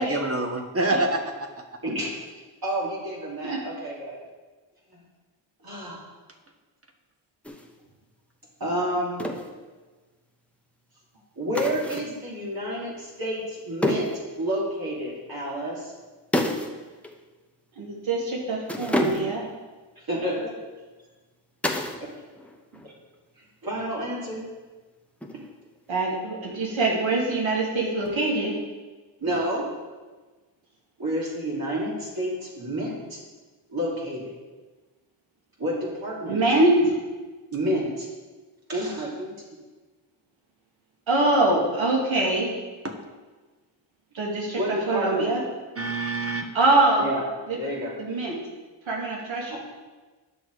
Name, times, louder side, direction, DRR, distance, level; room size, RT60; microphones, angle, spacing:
voice 1, 0.0-1.5 29.2-29.4 42.8-42.9 45.7-46.5, right 2 dB, 30° right, 4 dB, 1.5 m, -27 dB
voice 2, 2.6-4.2 5.6-6.0 8.6-9.2 11.4-15.9 20.1-20.5 22.0-22.1 23.6-24.5 29.2-29.7 31.0-33.2 33.7-34.3 35.6-36.4 37.5-38.1 38.7-39.6 44.5-45.3 47.0-47.3 47.6-47.9 49.5-49.6, equal, 50° right, -5 dB, 3.1 m, -29 dB
sound 1, 7.4-7.7 9.2-9.5 11.5-12.2 13.8-14.2 16.3-16.8 17.0-17.2 18.7-19.5 21.6-22.1 22.3-22.9 25.2-25.7, left 1 dB, 5° left, 1.1 m, -28 dB
voice 3, 17.8-19.4 25.9-28.5 36.3-36.9 41.1-42.5 44.1-45.4 46.5-47.1 48.0-48.4 48.9-49.6, right 2 dB, 75° right, -2 dB, 2.6 m, -23 dB
10.0 x 6.1 x 4.9 m, 1.3 s
cardioid pair, 50°, 47 cm